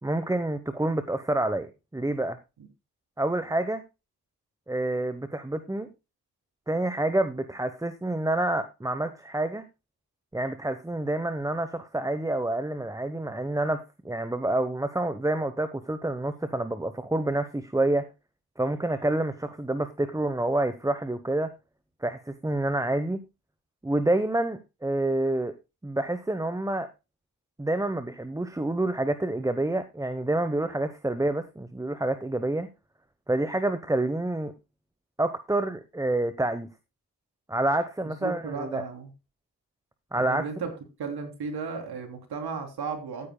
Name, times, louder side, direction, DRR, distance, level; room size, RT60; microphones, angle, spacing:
voice 1, 0.0-2.4 3.2-3.8 4.7-5.9 6.7-9.6 10.3-18.1 18.6-21.5 22.0-23.2 23.8-25.5 25.8-26.9 27.6-32.7 33.3-34.5 35.2-36.7 37.5-38.8 40.1-40.4, right 1 dB, 10° right, 10 dB, 0.9 m, -28 dB
voice 2, 38.2-39.1 40.1-40.7 41.0-43.3, right 5 dB, 80° right, 4 dB, 3.3 m, -34 dB
14.0 x 9.3 x 2.2 m, 0.25 s
cardioid pair, 70°, 38 cm